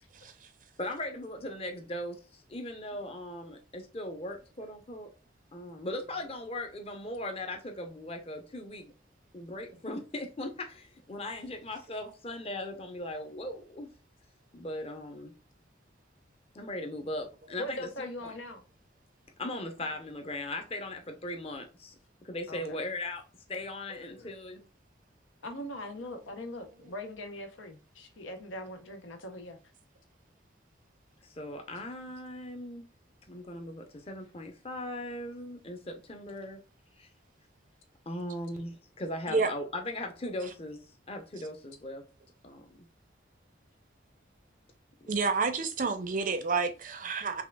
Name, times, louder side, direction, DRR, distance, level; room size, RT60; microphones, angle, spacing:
voice 1, 0.8-5.1 5.5-8.9 9.3-13.9 14.5-15.3 16.5-18.3 19.4-22.0 22.2-23.2 23.5-24.6 31.2-32.9 33.3-36.6 37.0-37.1 38.1-42.0 42.4-42.8, left 1 dB, 30° left, 0.7 m, -39 dB
voice 2, 17.6-18.6 22.5-22.6 23.9-24.3 25.4-29.6, left 1 dB, 85° left, 0.8 m, -41 dB
voice 3, 45.1-47.4, right 4 dB, 45° right, 0.5 m, -29 dB
5.5 x 2.4 x 2.3 m
head